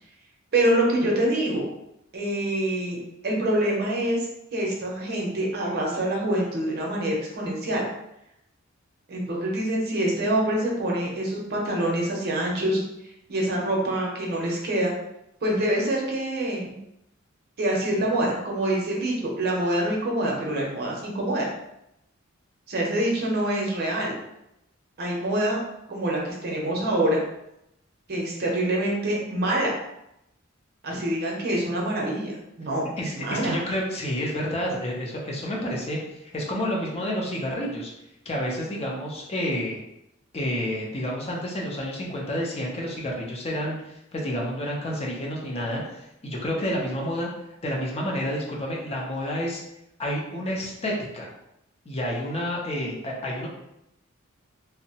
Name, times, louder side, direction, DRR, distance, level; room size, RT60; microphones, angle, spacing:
voice 1, 0.5-1.6 2.1-3.0 3.2-4.3 4.5-7.9 9.1-12.8 13.3-14.9 15.4-16.7 17.6-21.5 22.7-24.2 25.0-25.6 25.9-27.2 28.1-29.7 30.8-32.3 32.6-32.9 33.2-33.5, right 1 dB, 50° right, -2 dB, 0.6 m, -25 dB
voice 2, 33.0-37.9 38.3-39.8 40.3-47.3 47.6-49.6 50.0-51.3 51.9-53.5, equal, 30° left, -2 dB, 0.5 m, -29 dB
2.6 x 2.0 x 2.7 m, 0.84 s
head